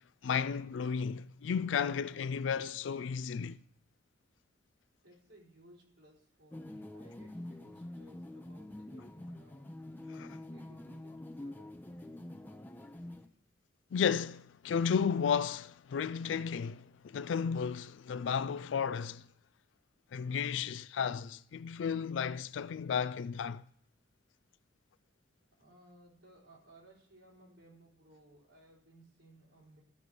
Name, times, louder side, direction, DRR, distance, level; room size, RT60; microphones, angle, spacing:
voice 1, 0.2-3.6 10.1-10.4 13.9-19.2 20.1-23.6, left 6 dB, 85° left, 0.4 m, -33 dB
voice 2, 5.0-9.7 10.4-11.1 11.4-12.0 25.6-29.8, right 1 dB, 90° right, 4.4 m, -60 dB
sound 1, 6.5-13.3, left 1 dB, 10° left, 0.6 m, -46 dB
14.5 x 6.9 x 4.7 m
head